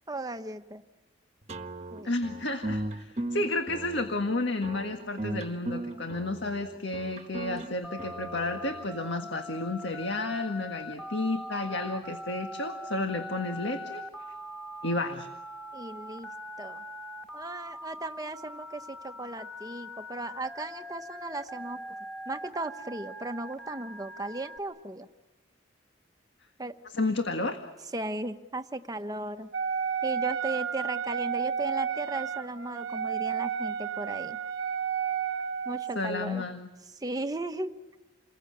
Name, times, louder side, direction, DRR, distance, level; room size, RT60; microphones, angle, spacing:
voice 1, 0.1-0.8 1.9-2.1 15.7-16.3 16.6-16.8 17.3-21.8 22.3-25.1 26.6-26.8 27.9-29.5 30.0-34.4 35.6-36.4 36.9-37.7, right 2 dB, 20° right, 8 dB, 1.0 m, -36 dB
sound 1, 1.5-8.9, right 1 dB, 35° right, 1.3 m, -37 dB
voice 2, 2.0-14.0 14.8-15.3 26.9-27.6 35.9-36.7, left 2 dB, 65° left, 5 dB, 1.7 m, -31 dB
Telephone, 7.8-24.6, equal, 5° left, 2.3 m, -42 dB
Wind instrument woodwind instrument, 29.5-36.0, right 7 dB, 75° right, 1.0 m, -31 dB
29.0 x 21.5 x 8.7 m, 1.1 s
head